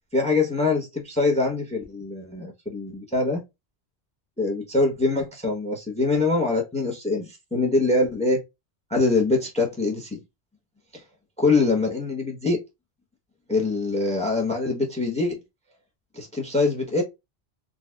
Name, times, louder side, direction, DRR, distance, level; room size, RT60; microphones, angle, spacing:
voice 1, 0.1-3.4 4.4-8.4 8.9-10.2 10.9-11.0 11.4-12.6 13.5-15.4 16.1-17.0, left 3 dB, 5° left, 0.8 m, -24 dB
4.0 x 2.5 x 2.2 m
omnidirectional pair, 1.1 m